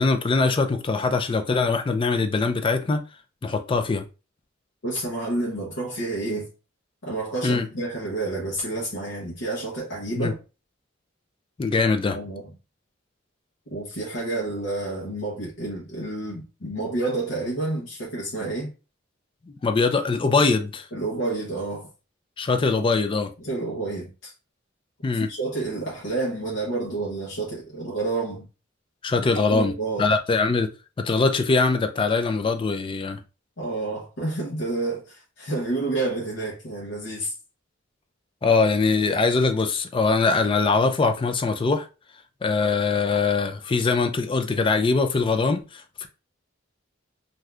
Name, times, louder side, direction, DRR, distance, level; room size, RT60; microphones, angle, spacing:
voice 1, 0.0-3.0 3.4-4.1 7.4-7.7 10.2-10.3 11.6-12.2 19.5-20.9 22.4-23.3 25.0-25.3 29.0-29.7 30.0-30.7 31.0-33.2 38.4-41.9 42.4-46.1, left 4 dB, 25° left, 0.3 m, -22 dB
voice 2, 4.8-6.5 7.0-10.3 12.1-12.4 13.7-18.7 20.9-21.9 23.4-24.3 25.3-28.5 29.5-30.1 33.6-37.3, right 2 dB, 65° left, 0.9 m, -29 dB
3.4 x 2.6 x 2.3 m
head